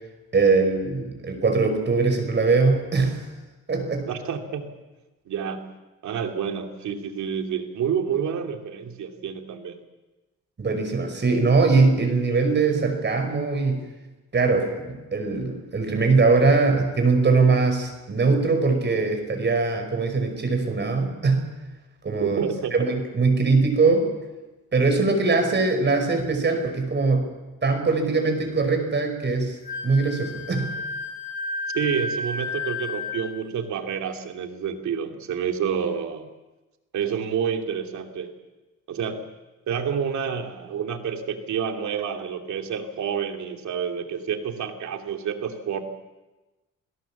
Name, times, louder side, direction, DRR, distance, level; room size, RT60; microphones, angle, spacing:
voice 1, 0.3-3.2 3.7-4.1 10.6-13.8 14.3-21.5 22.0-22.4 22.7-24.1 24.7-27.3 27.6-29.6 29.8-30.7, right 4 dB, 35° right, 5 dB, 5.5 m, -21 dB
voice 2, 4.1-4.6 5.3-5.7 6.0-9.8 22.2-22.7 31.7-36.3 36.9-38.3 38.9-39.3 39.7-45.8, right 7 dB, 70° right, 4 dB, 2.7 m, -28 dB
Wind instrument woodwind instrument, 29.6-33.4, left 3 dB, 30° left, 7.9 m, -32 dB
27.5 x 17.5 x 7.3 m, 1.1 s
cardioid pair, 90°, 30 cm